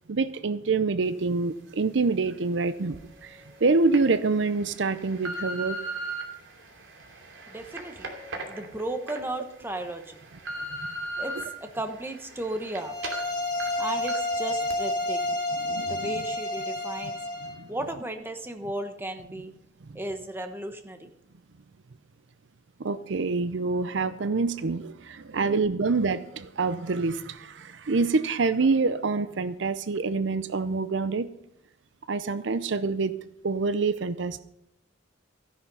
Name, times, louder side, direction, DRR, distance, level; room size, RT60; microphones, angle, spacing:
voice 1, 0.1-5.8 15.6-16.1 17.4-17.7 22.8-31.3 32.1-33.2 33.4-34.4, right 4 dB, 65° right, 14 dB, 0.6 m, -26 dB
sound 1, 2.9-3.0 3.7-4.0 4.6-6.2 6.9-9.2 9.6-9.7 10.1-11.4 11.9-12.8 13.0-13.2 13.6-13.7 14.1-14.3 14.7-14.8, right 1 dB, 85° right, 2.7 m, -36 dB
voice 2, 7.5-8.1 8.5-10.2 11.2-12.9 13.8-15.4 15.9-17.2 17.7-19.5 19.9-21.1, right 1 dB, 10° right, 6 dB, 1.2 m, -35 dB
sound 2, 12.8-17.6, left 2 dB, 25° left, 4.4 m, -30 dB
14.5 x 10.5 x 5.5 m, 0.79 s
head